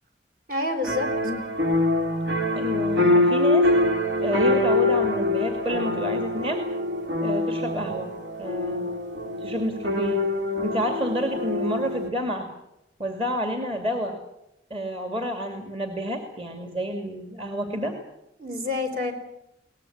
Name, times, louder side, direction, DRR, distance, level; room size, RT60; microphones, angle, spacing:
voice 1, 0.5-1.3 18.4-19.1, left 3 dB, 50° right, 5 dB, 4.3 m, -28 dB
sound 1, 0.8-12.1, left 2 dB, 85° right, 3.2 m, -24 dB
voice 2, 2.6-3.7 4.2-6.6 7.2-8.1 8.4-8.9 9.4-10.3 10.6-12.5 13.0-14.2 14.7-17.9, equal, 30° right, 5 dB, 2.4 m, -29 dB
22.5 x 19.0 x 8.8 m, 0.85 s
head